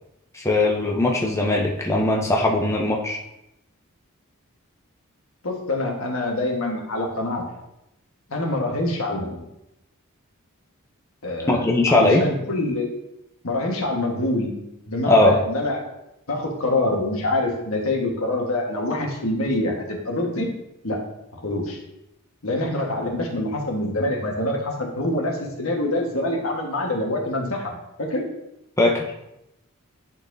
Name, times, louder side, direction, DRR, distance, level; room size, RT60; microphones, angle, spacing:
voice 1, 0.3-3.2 11.5-12.2 15.1-15.4 28.8-29.0, left 2 dB, 15° left, 0 dB, 0.6 m, -19 dB
voice 2, 5.4-7.4 8.3-9.4 11.2-12.9 13.4-14.5 14.9-15.8 16.3-20.5 20.8-21.0 21.3-21.8 22.4-28.2, left 1 dB, 70° left, 0 dB, 1.4 m, -25 dB
11.0 x 4.2 x 2.6 m, 0.87 s
head